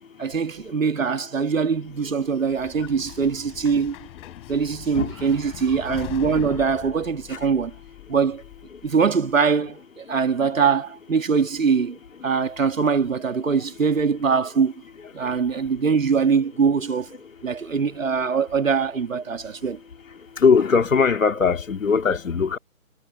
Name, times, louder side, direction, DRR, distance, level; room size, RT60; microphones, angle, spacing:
voice 1, 0.2-4.0 4.5-7.7 8.1-8.4 8.8-12.0 12.2-14.7 15.1-17.1 17.4-19.8, right 5 dB, 65° right, 3.0 m, -22 dB
sound 1, 1.8-8.9, left 25 dB, 20° left, 5.6 m, -41 dB
voice 2, 20.4-22.6, left 5 dB, 65° left, 2.5 m, -19 dB
figure-of-eight pair, 155°, 43 cm